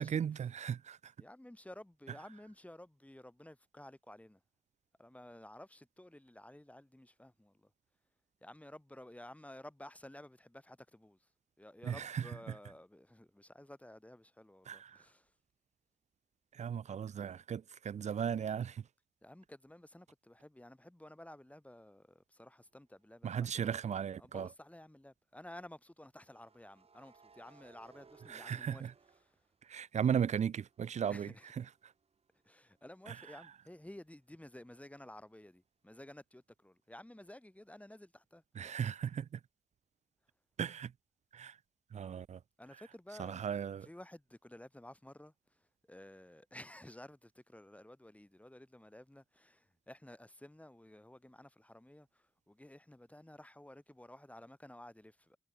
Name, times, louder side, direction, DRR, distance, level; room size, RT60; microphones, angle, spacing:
voice 1, 0.0-1.1 11.8-12.3 14.7-15.0 16.5-18.9 23.2-24.5 28.3-28.9 29.6-31.9 33.1-33.2 38.5-39.4 40.6-40.9 41.3-41.6 41.9-42.4 43.2-43.9, right 8 dB, 65° right, 1.3 m, -36 dB
voice 2, 1.2-4.4 5.0-7.7 8.4-11.3 11.6-15.3 19.2-23.7 24.2-28.9 29.2-29.5 31.1-31.5 32.4-38.4 42.6-43.4 43.8-55.4, left 1 dB, 10° left, 5.3 m, -54 dB
sound 1, 22.9-23.2 26.2-30.1 30.5-34.1, right 5 dB, 50° right, 5.2 m, -65 dB
supercardioid pair, 40°, 12 cm